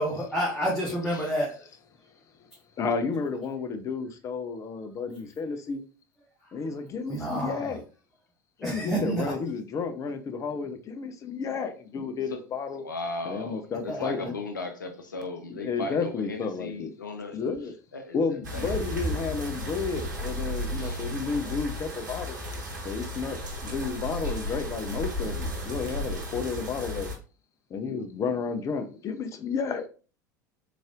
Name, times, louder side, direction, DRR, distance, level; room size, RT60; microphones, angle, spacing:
voice 1, 0.0-1.5 7.1-7.7 8.6-9.3 13.9-14.3, right 1 dB, ahead, 1.5 m, -29 dB
voice 2, 2.8-5.8 6.5-7.8 8.6-12.8 13.2-14.4 15.5-16.9 17.3-17.7 18.1-22.4 22.8-27.1 27.7-29.9, left 5 dB, 30° left, 0.6 m, -32 dB
voice 3, 12.8-17.4 17.9-18.7 20.7-21.0, left 3 dB, 80° left, 0.7 m, -37 dB
sound 1, 18.4-27.2, equal, 70° right, 1.0 m, -34 dB
3.9 x 3.1 x 2.4 m
figure-of-eight pair, 75°, 10 cm